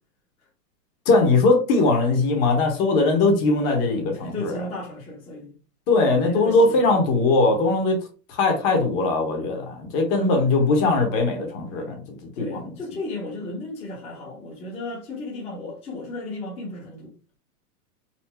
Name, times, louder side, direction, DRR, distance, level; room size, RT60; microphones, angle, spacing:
voice 1, 1.1-4.6 5.9-8.0 8.3-12.0 12.4-12.7, left 3 dB, 30° left, 1.2 m, -20 dB
voice 2, 4.1-5.5 6.2-7.0 10.6-10.7 12.3-17.1, left 2 dB, 15° left, 0.9 m, -35 dB
4.2 x 2.7 x 4.4 m
hypercardioid pair, 155°, 47 cm